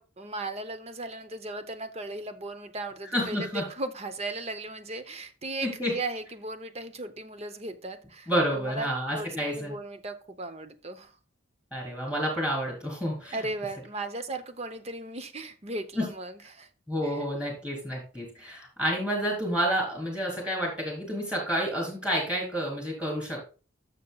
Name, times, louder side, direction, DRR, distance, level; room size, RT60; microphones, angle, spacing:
voice 1, 0.0-11.2 13.3-16.7 17.0-17.2, right 2 dB, 30° right, 10 dB, 0.8 m, -37 dB
voice 2, 3.1-3.7 5.6-6.0 8.3-9.8 11.7-13.4 16.0-16.1 16.9-23.5, equal, 5° right, -1 dB, 3.6 m, -29 dB
12.5 x 6.7 x 2.3 m, 0.34 s
head